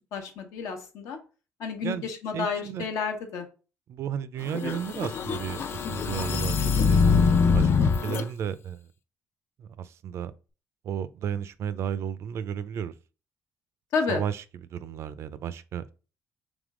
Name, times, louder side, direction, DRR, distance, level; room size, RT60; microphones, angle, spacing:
voice 1, 0.1-1.2 1.6-3.5 13.9-14.2, left 5 dB, 80° left, 1.0 m, -30 dB
voice 2, 2.3-2.9 3.9-5.6 5.9-8.9 9.6-10.3 10.8-12.9 14.1-14.4 14.7-15.9, right 9 dB, 60° right, 0.4 m, -33 dB
sound 1, 4.5-8.2, left 5 dB, 50° left, 0.5 m, -23 dB
3.5 x 3.2 x 3.6 m
cardioid pair, 120°, 5 cm